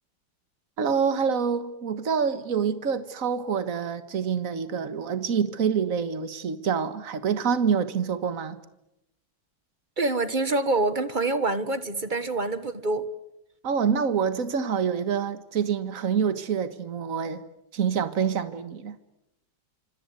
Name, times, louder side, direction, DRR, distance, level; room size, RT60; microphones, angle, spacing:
voice 1, 0.8-8.6 13.6-17.4 17.7-19.0, right 6 dB, 45° right, 1.9 m, -26 dB
voice 2, 10.0-13.0, right 2 dB, 25° right, 1.4 m, -26 dB
26.5 x 26.0 x 8.1 m
omnidirectional pair, 2.2 m